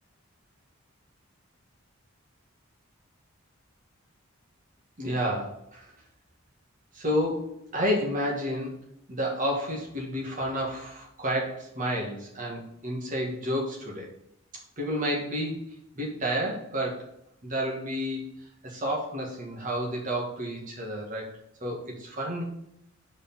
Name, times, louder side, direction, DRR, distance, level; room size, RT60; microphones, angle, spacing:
voice 1, 5.0-5.8 6.9-8.7 9.1-14.1 14.8-15.6 15.9-17.1 17.4-18.3 18.6-22.4, equal, 40° right, -1 dB, 1.8 m, -30 dB
5.1 x 4.6 x 5.5 m, 0.76 s
head